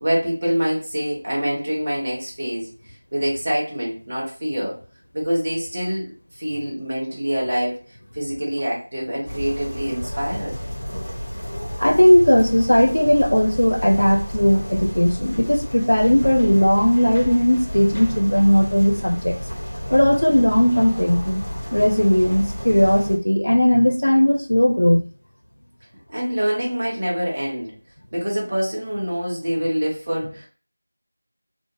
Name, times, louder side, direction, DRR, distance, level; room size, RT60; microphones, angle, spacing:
voice 1, 0.0-2.7 3.1-4.8 5.1-7.8 8.1-10.6 26.1-27.7 28.1-30.5, equal, 30° right, 0.8 m, -25 dB
sound 1, 9.2-23.2, equal, 30° left, 0.9 m, -31 dB
voice 2, 11.8-19.4 19.9-21.4 21.7-25.1, equal, 70° left, 0.5 m, -17 dB
2.5 x 2.0 x 3.2 m
figure-of-eight pair, 175°, 0 cm